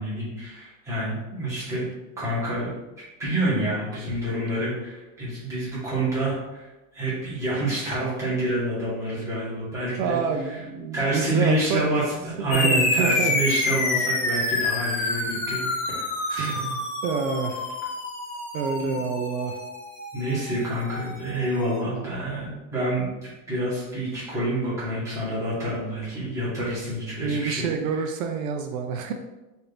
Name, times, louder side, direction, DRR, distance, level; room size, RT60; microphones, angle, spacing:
voice 1, 0.0-1.9 2.2-2.7 3.2-10.6 10.9-16.0 16.3-16.5 18.8-19.0 20.1-27.7, right 1 dB, 5° right, -9 dB, 1.2 m, -28 dB
voice 2, 10.0-11.8 12.4-13.3 16.4-17.7 18.5-19.6 27.2-29.1, right 5 dB, 75° right, 5 dB, 0.6 m, -28 dB
sound 1, 12.5-21.4, left 2 dB, 25° left, 0.8 m, -28 dB
4.3 x 2.6 x 3.3 m, 1.1 s
supercardioid pair, 175°, 41 cm